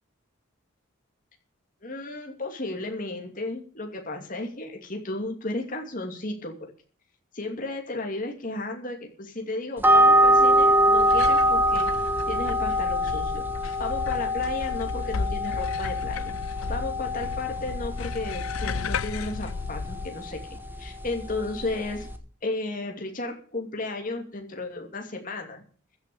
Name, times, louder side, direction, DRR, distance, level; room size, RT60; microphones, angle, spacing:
voice 1, 1.8-6.7 7.3-11.9 12.3-13.4 13.8-16.3 16.7-20.4 20.8-22.1 22.4-25.6, left 2 dB, 40° left, 3 dB, 2.5 m, -34 dB
sound 1, 9.8-22.2, equal, 10° right, 1.3 m, -24 dB
sound 2, 11.0-20.1, left 4 dB, 80° left, 0.6 m, -34 dB
15.0 x 6.2 x 8.4 m, 0.42 s
head